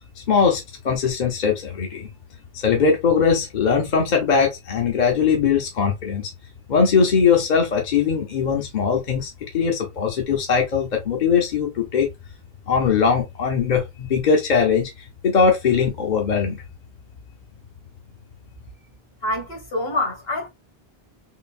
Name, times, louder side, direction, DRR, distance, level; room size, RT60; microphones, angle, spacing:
voice 1, 0.2-2.1 2.5-6.3 6.7-12.1 12.7-16.6, left 6 dB, 50° left, 0.8 m, -20 dB
voice 2, 19.2-20.5, left 1 dB, 70° left, 1.6 m, -26 dB
3.8 x 2.0 x 2.5 m
omnidirectional pair, 1.0 m